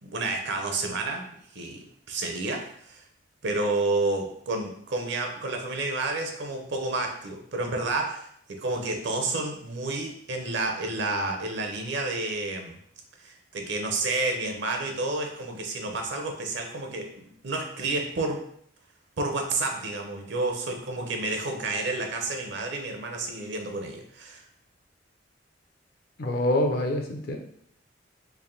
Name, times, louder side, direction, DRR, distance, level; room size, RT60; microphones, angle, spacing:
voice 1, 0.0-3.0 3.4-12.8 13.2-18.4 19.2-24.4, right 2 dB, 65° right, 3 dB, 0.7 m, -30 dB
voice 2, 26.2-27.4, left 1 dB, 55° left, 3 dB, 0.6 m, -25 dB
3.4 x 2.5 x 3.8 m, 0.65 s
head